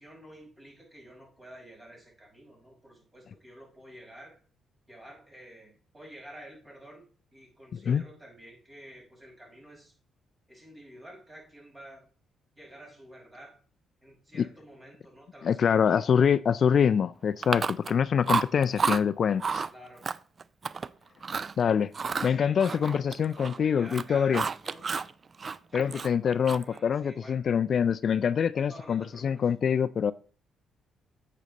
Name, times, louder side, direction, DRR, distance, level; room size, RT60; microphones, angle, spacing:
voice 1, 0.0-4.4 4.9-7.0 7.3-9.9 10.5-12.1 12.6-13.6 14.0-16.0 19.7-20.1 22.3-24.8 25.7-26.2 26.5-27.4 28.7-29.5, right 1 dB, 20° right, 5.2 m, -50 dB
voice 2, 7.7-8.0 14.4-14.5 15.4-19.6 21.6-21.9 22.2-24.4 25.7-30.1, left 7 dB, 55° left, 0.3 m, -25 dB
Chewing mastication, 17.4-18.0 18.3-19.0 19.4-19.7 20.0-20.9 21.2-21.5 21.9-23.6 23.8-25.1 25.4-26.8, right 5 dB, 40° right, 0.4 m, -30 dB
8.4 x 7.6 x 4.0 m
cardioid pair, 90°, 0 cm